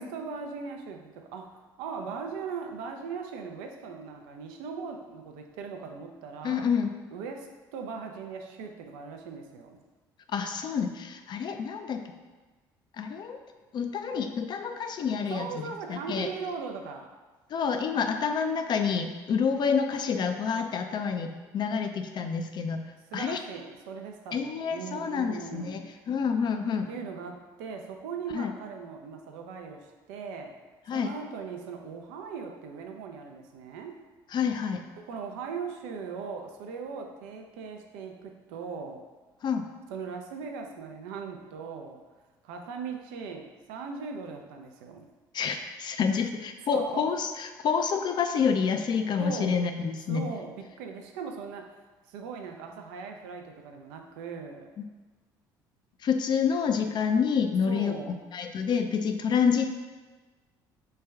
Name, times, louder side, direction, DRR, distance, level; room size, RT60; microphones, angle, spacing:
voice 1, 0.0-1.5 1.8-6.7 7.1-9.8 15.3-17.1 23.1-25.8 26.9-30.5 30.9-34.0 35.0-39.0 39.9-42.0 42.4-45.0 46.7-47.1 49.2-49.6 50.1-51.8 52.1-54.7 57.7-58.1, right 5 dB, 80° right, 4 dB, 0.4 m, -39 dB
voice 2, 6.4-6.9 10.3-12.0 13.0-13.4 13.7-16.3 17.5-22.8 23.1-23.4 24.3-25.8 26.1-26.9 28.3-28.5 30.9-31.1 34.3-34.8 39.4-39.7 45.3-50.3 56.0-59.7, left 6 dB, 45° left, 6 dB, 0.4 m, -28 dB
3.2 x 2.2 x 3.4 m, 1.3 s
hypercardioid pair, 65°, 10 cm